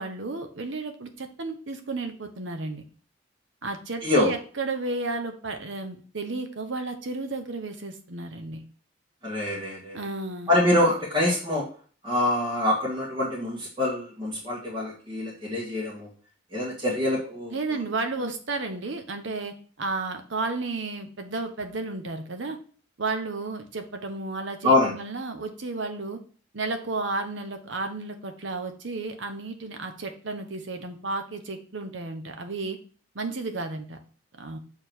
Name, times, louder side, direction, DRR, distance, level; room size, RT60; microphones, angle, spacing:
voice 1, 0.0-2.8 3.6-8.6 9.9-10.5 17.5-22.6 23.0-26.2 26.5-32.8 33.1-34.0 34.4-34.6, right 3 dB, 70° right, 6 dB, 1.0 m, -32 dB
voice 2, 4.0-4.3 9.2-10.0 10.5-11.7 12.0-16.1 16.5-17.6 24.6-24.9, left 1 dB, 25° right, -6 dB, 1.7 m, -25 dB
6.7 x 3.6 x 4.5 m, 0.42 s
head